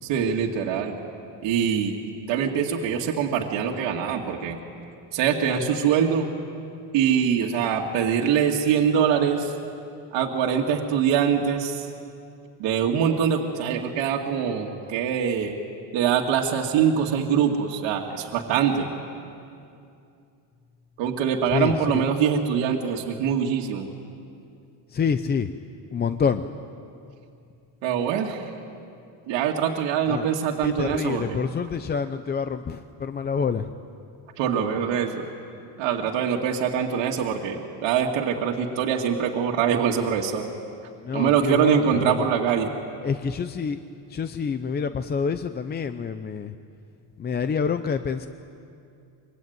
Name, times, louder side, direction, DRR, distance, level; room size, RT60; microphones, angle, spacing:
voice 1, 0.0-0.9 1.4-1.9 2.3-4.6 5.1-6.3 6.9-9.5 10.1-11.9 12.6-15.6 15.9-18.9 21.0-23.9 27.8-28.4 29.3-31.4 34.4-35.3 35.8-40.4 41.1-42.7, right 8 dB, 75° right, 0 dB, 2.3 m, -23 dB
voice 2, 21.5-22.0 24.9-25.5 25.9-26.4 30.1-30.3 30.6-33.6 41.1-42.3 43.0-43.8 44.1-46.5 47.2-48.3, left 6 dB, 20° left, 10 dB, 0.6 m, -27 dB
25.0 x 23.5 x 9.4 m, 2.5 s
cardioid pair, 145°, 45 cm